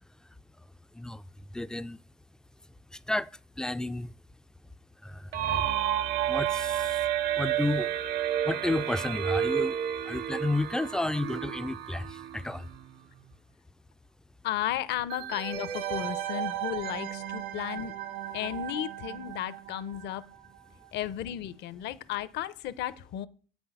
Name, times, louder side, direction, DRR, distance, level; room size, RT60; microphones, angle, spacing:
voice 1, 1.5-2.0 2.9-3.3 3.6-4.1 5.0-5.7 6.3-7.0 7.4-7.9 8.4-9.8 10.1-12.7, left 2 dB, 5° left, 0.3 m, -32 dB
sound 1, 5.3-12.9, right 10 dB, 55° right, 0.7 m, -30 dB
voice 2, 14.4-17.9 18.3-20.2 20.9-23.3, left 12 dB, 60° left, 0.8 m, -34 dB
sound 2, 15.1-20.6 20.8-20.9, right 12 dB, 85° right, 1.6 m, -37 dB
7.9 x 6.2 x 5.5 m
supercardioid pair, 100°, 20 cm